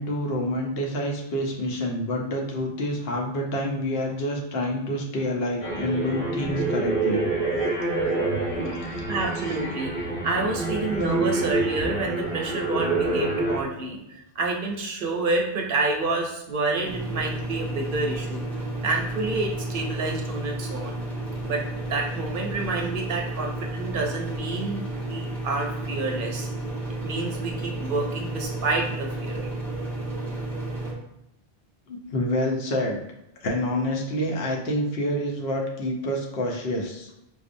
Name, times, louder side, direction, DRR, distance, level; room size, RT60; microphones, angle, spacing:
voice 1, 0.0-7.3 8.5-9.1 31.9-33.0 33.4-37.1, left 1 dB, 70° left, 0 dB, 0.9 m, -28 dB
sound 1, 5.6-13.6, right 2 dB, 90° left, 1.2 m, -27 dB
voice 2, 9.1-9.9 10.2-18.4 18.8-21.0 21.4-26.5 27.0-29.5, right 3 dB, 60° right, 1 dB, 0.7 m, -28 dB
sound 2, 16.8-30.9, right 1 dB, ahead, 0.6 m, -32 dB
4.9 x 2.0 x 2.5 m, 0.84 s
omnidirectional pair, 1.1 m